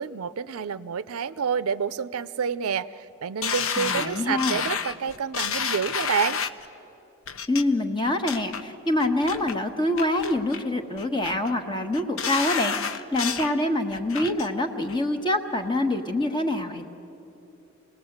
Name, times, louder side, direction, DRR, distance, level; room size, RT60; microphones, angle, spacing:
voice 1, 0.0-6.4, right 6 dB, 80° right, 14 dB, 0.5 m, -28 dB
sound 1, 3.4-6.7 7.3-7.6 8.0-8.6 9.0-9.5 10.0-10.6 11.0-11.5 11.9-13.5 13.9-14.5 14.9-15.0, left 6 dB, 65° left, 0.7 m, -30 dB
voice 2, 3.8-4.6 7.5-16.9, left 1 dB, 20° left, 6 dB, 1.2 m, -26 dB
26.5 x 19.0 x 7.9 m, 2.9 s
head